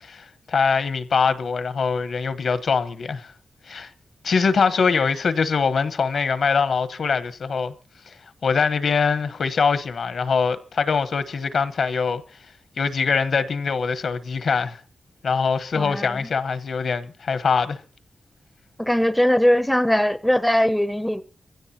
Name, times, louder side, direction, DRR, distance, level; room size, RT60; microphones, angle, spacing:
voice 1, 0.0-3.3 3.7-3.9 4.2-7.7 8.1-8.2 8.4-12.2 12.8-14.8 15.2-17.8, left 5 dB, 65° left, 1.1 m, -23 dB
voice 2, 15.7-16.3 18.8-21.2, equal, 5° left, 0.6 m, -20 dB
24.5 x 16.0 x 2.9 m
wide cardioid pair, 175°, 0 cm